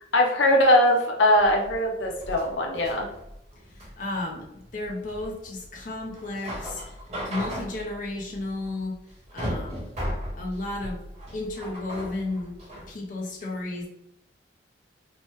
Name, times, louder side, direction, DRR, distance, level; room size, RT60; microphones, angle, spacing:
voice 1, 0.1-3.1, left 1 dB, 85° left, 1 dB, 0.6 m, -21 dB
sound 1, 1.3-12.9, equal, 35° right, 1.0 m, -37 dB
voice 2, 3.7-6.8 7.3-9.0 9.3-9.9 10.4-11.0 11.3-12.6 12.9-13.9, left 2 dB, 45° left, -1 dB, 0.5 m, -33 dB
3.0 x 2.1 x 3.1 m, 0.84 s
head